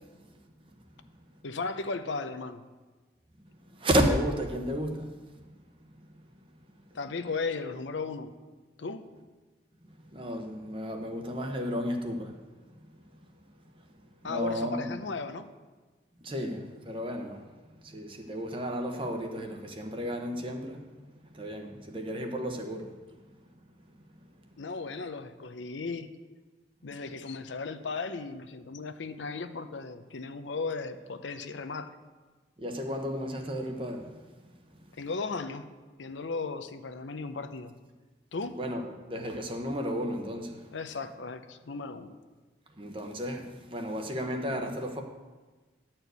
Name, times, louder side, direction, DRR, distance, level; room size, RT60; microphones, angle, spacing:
voice 1, 1.4-2.6 6.9-8.3 8.8-9.0 14.2-15.5 24.6-26.1 26.8-31.9 35.0-35.7 36.0-37.7 38.3-38.5 40.7-42.2, left 4 dB, 85° left, 0.6 m, -36 dB
voice 2, 3.6-5.2 6.2-6.3 10.1-12.4 13.8-13.9 14.2-14.9 16.2-17.5 17.8-21.0 21.2-23.2 23.8-23.9 32.6-34.2 38.6-40.7 42.8-45.0, equal, 30° right, 0.9 m, -33 dB
11.0 x 4.5 x 8.0 m
head